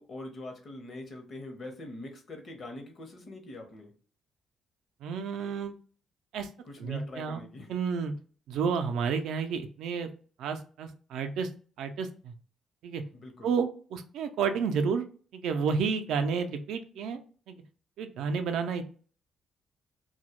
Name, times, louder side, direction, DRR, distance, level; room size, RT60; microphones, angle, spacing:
voice 1, 0.0-3.9 6.6-7.7 13.1-13.5, left 2 dB, 50° left, 4 dB, 0.7 m, -43 dB
voice 2, 5.0-5.8 6.3-6.5 6.8-7.4 7.7-8.1 8.5-10.1 10.4-11.5 11.8-12.3 12.8-13.0 13.4-15.1 15.3-17.2 17.5-17.6 18.0-18.9, right 6 dB, 80° right, 7 dB, 0.4 m, -31 dB
2.2 x 2.1 x 2.9 m, 0.40 s
cardioid pair, 90°, 0 cm